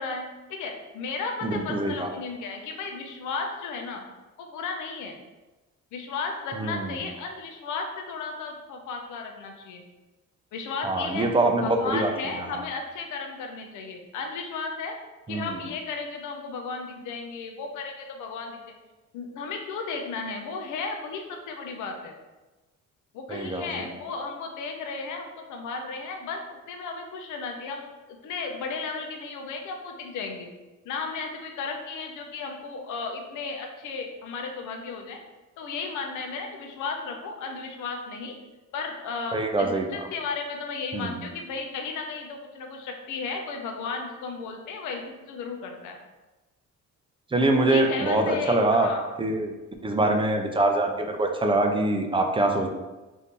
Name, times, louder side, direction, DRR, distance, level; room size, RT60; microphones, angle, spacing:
voice 1, 0.0-4.0 4.4-5.2 5.9-9.8 10.5-11.3 11.6-14.9 15.3-18.6 19.1-22.1 23.1-26.4 26.7-27.9 28.2-30.5 30.8-35.2 35.6-38.4 38.7-46.0 47.7-49.1, left 4 dB, 80° left, 3 dB, 0.6 m, -34 dB
voice 2, 1.4-2.1 6.6-7.0 10.8-12.1 12.5-12.6 15.3-15.6 23.3-23.8 39.3-40.0 40.9-41.2 47.3-48.9 49.2-49.5 49.8-52.7, right 2 dB, 15° right, 3 dB, 0.4 m, -24 dB
2.7 x 2.6 x 3.6 m, 1.1 s
cardioid pair, 90°, 30 cm